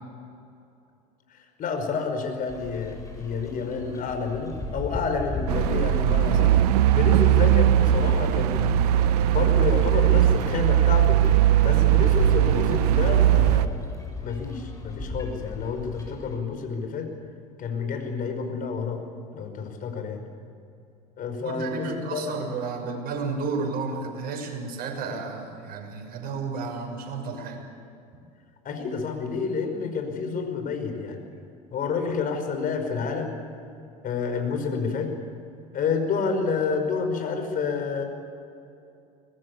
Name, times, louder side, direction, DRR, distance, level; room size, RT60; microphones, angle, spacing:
voice 1, 1.3-6.6 6.9-9.0 9.3-11.2 11.6-13.8 14.2-17.1 17.6-19.0 19.3-20.2 21.2-22.4 28.6-31.2 31.7-33.3 34.0-35.1 35.7-38.0, left 5 dB, 45° left, 5 dB, 5.4 m, -29 dB
sound 1, 2.5-16.4, left 2 dB, 15° left, 7.5 m, -36 dB
sound 2, 5.5-13.7, right 12 dB, 70° right, 1.0 m, -19 dB
voice 2, 21.4-27.6, right 4 dB, 50° right, 2 dB, 6.6 m, -32 dB
23.5 x 20.0 x 8.6 m, 2.6 s
hypercardioid pair, 80°, 20 cm